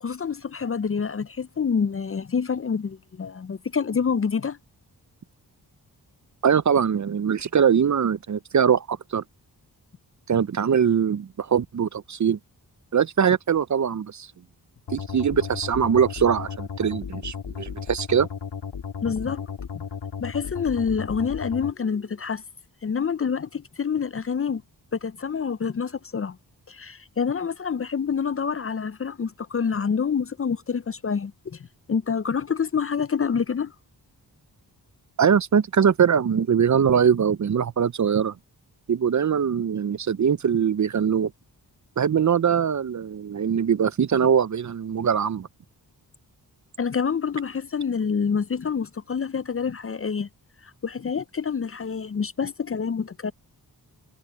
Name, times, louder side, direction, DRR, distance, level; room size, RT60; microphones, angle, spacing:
voice 1, 0.0-4.6 19.0-19.4 20.2-22.4 22.8-24.6 24.9-26.4 26.7-31.6 31.9-33.7 46.8-50.3 50.6-53.3, left 6 dB, 35° left, 0.5 m, -27 dB
voice 2, 6.4-9.2 10.3-12.4 12.9-14.3 14.9-18.3 35.2-38.3 38.9-41.3 42.0-45.5, right 7 dB, 45° right, 0.6 m, -22 dB
sound 1, 14.9-21.7, left 6 dB, 80° left, 2.7 m, -35 dB
cardioid pair, 65°, 41 cm